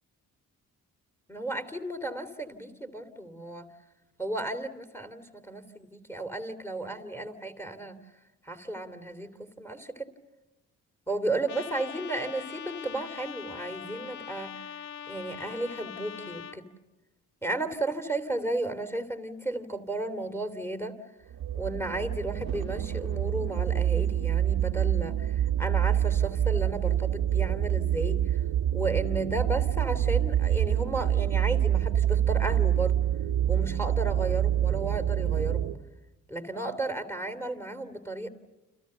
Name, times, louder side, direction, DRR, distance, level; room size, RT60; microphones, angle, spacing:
voice 1, 1.3-3.7 4.2-7.9 8.4-10.1 11.1-14.6 15.1-16.7 17.4-21.0 21.5-28.2 28.7-33.0 33.5-35.7 36.3-38.3, right 2 dB, 5° left, 3.2 m, -34 dB
Trumpet, 11.5-16.6, left 9 dB, 85° left, 1.2 m, -42 dB
sound 1, 21.3-35.8, right 10 dB, 60° right, 1.2 m, -26 dB
30.0 x 28.5 x 6.9 m
hypercardioid pair, 40°, 41 cm